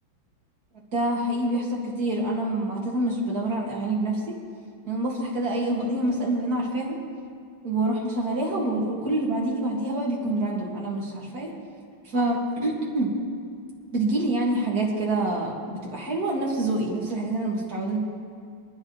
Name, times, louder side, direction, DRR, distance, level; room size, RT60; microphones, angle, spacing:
voice 1, 0.9-4.4 4.9-7.0 7.6-11.5 12.0-13.1 13.9-18.0, right 1 dB, 45° right, -4 dB, 3.1 m, -26 dB
26.5 x 10.0 x 3.5 m, 2.2 s
omnidirectional pair, 2.2 m